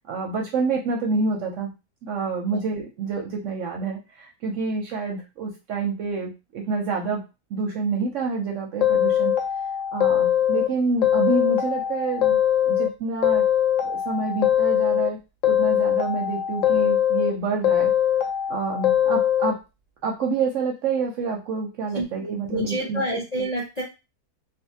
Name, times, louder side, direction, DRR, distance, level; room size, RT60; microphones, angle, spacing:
voice 1, 0.1-1.7 2.0-7.2 7.5-9.3 9.9-12.4 12.6-13.4 13.8-15.2 15.5-17.9 18.5-19.6 20.0-23.0, right 4 dB, 65° right, 1 dB, 0.8 m, -27 dB
sound 1, 8.8-10.7 11.0-12.9 13.2-15.1 15.4-17.3 17.6-19.5, left 10 dB, 70° left, 0.9 m, -21 dB
voice 2, 21.9-23.8, equal, 45° left, -4 dB, 0.5 m, -28 dB
2.5 x 2.4 x 2.7 m, 0.26 s
omnidirectional pair, 1.6 m